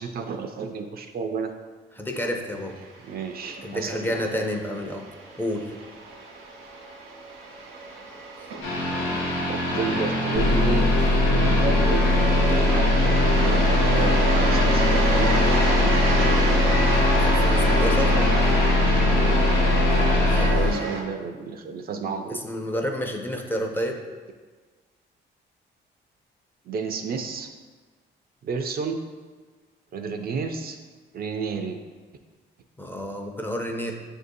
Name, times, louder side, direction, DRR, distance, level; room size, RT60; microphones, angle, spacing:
voice 1, 0.0-1.5 3.0-4.2 9.5-12.1 12.4-16.4 20.5-22.4 26.7-27.5 28.4-29.1 29.9-30.8 31.1-31.8, right 5 dB, 50° right, 6 dB, 0.4 m, -32 dB
voice 2, 2.0-2.8 3.6-5.1 5.4-5.7 8.4-8.5 17.2-18.2 20.3-21.0 22.3-24.0 32.8-33.9, equal, 10° left, 2 dB, 0.4 m, -30 dB
sound 1, 2.7-21.0, right 3 dB, 85° right, 0.8 m, -30 dB
sound 2, 8.6-20.5, equal, 80° left, 0.9 m, -26 dB
sound 3, 10.3-20.7, left 2 dB, 60° left, 0.5 m, -21 dB
6.1 x 2.6 x 2.6 m, 1.4 s
cardioid pair, 90°, 20 cm